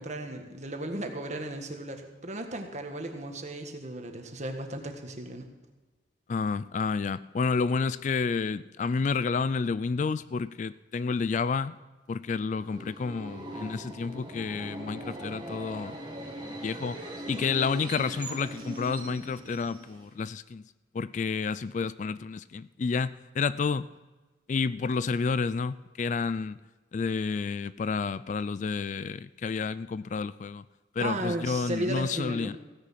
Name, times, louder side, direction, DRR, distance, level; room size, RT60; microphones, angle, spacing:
voice 1, 0.0-5.5 31.0-32.5, right 1 dB, 40° right, 1.6 m, -35 dB
voice 2, 6.3-11.8 12.1-16.0 16.4-20.6 20.9-23.9 24.5-26.6 26.9-30.6 31.0-32.6, left 5 dB, 40° left, 0.3 m, -30 dB
Subway metro underground, 12.4-20.2, right 1 dB, 25° right, 2.1 m, -41 dB
16.0 x 10.0 x 5.8 m
head